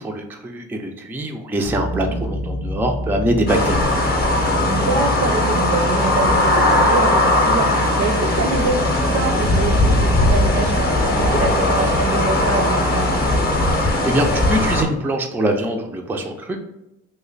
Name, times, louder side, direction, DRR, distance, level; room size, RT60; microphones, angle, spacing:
voice 1, 0.0-3.8 13.8-16.6, right 1 dB, 5° right, 2 dB, 0.4 m, -23 dB
sound 1, 1.6-13.7, left 1 dB, 70° left, 0.5 m, -27 dB
voice 2, 1.9-2.3 4.7-10.9 11.2-13.1, right 4 dB, 55° right, 6 dB, 0.6 m, -25 dB
sound 2, 3.5-14.8, left 1 dB, 30° left, 0.7 m, -19 dB
3.1 x 2.1 x 3.8 m, 0.90 s
cardioid pair, 90°, 30 cm